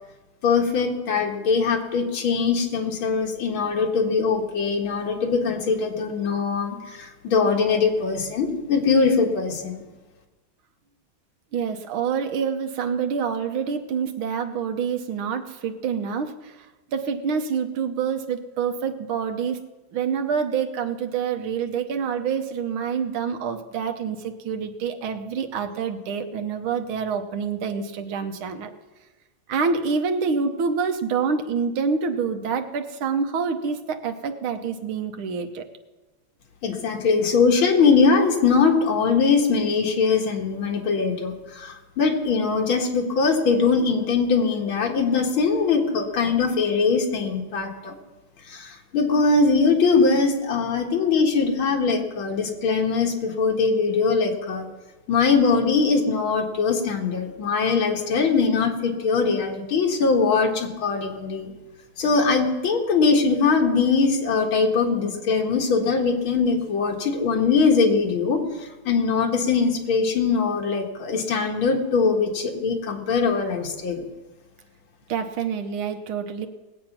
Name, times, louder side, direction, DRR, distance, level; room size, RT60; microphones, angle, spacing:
voice 1, 0.4-9.8 36.6-47.9 48.5-54.7 55.1-61.5 62.0-68.4 68.8-74.0, left 4 dB, 90° left, 1 dB, 2.5 m, -21 dB
voice 2, 11.5-19.7 19.9-28.7 29.5-35.7 75.1-76.5, right 6 dB, 85° right, 7 dB, 1.8 m, -27 dB
19.5 x 8.2 x 5.9 m, 1.1 s
omnidirectional pair, 2.2 m